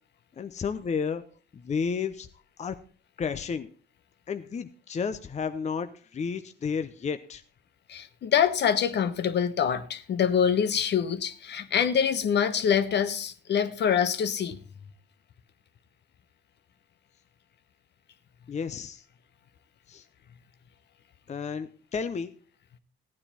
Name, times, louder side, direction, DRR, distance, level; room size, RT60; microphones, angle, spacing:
voice 1, 0.4-1.2 1.5-2.3 2.6-2.8 3.2-3.7 4.3-7.4 18.5-19.0 19.9-20.1 21.3-22.3, left 6 dB, 35° left, 0.7 m, -32 dB
voice 2, 7.9-14.6, left 8 dB, 60° left, 1.0 m, -25 dB
15.0 x 9.7 x 4.2 m
cardioid pair, 90°, 20 cm